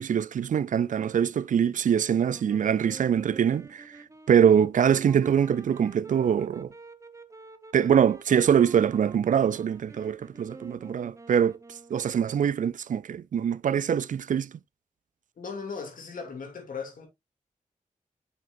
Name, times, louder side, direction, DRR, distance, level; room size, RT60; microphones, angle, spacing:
voice 1, 0.0-6.7 7.7-11.6 11.9-14.5, right 8 dB, 70° right, 0.4 m, -24 dB
sound 1, 2.2-12.1, right 3 dB, 25° right, 0.8 m, -49 dB
voice 2, 15.4-17.1, left 5 dB, 85° left, 2.6 m, -37 dB
7.3 x 6.1 x 2.6 m
cardioid pair, 65°, 14 cm